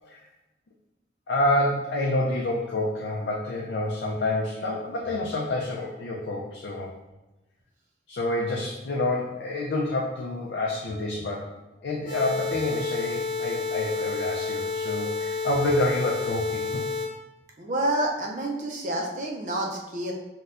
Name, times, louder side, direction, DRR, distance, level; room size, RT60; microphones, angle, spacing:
voice 1, 1.3-6.9 8.1-11.5 11.8-16.8, left 1 dB, 70° left, -3 dB, 0.4 m, -28 dB
sound 1, 12.1-17.1, left 4 dB, 30° left, 1.1 m, -30 dB
voice 2, 17.6-20.1, right 1 dB, 45° right, 0 dB, 0.4 m, -28 dB
4.2 x 2.2 x 2.5 m, 1.0 s
head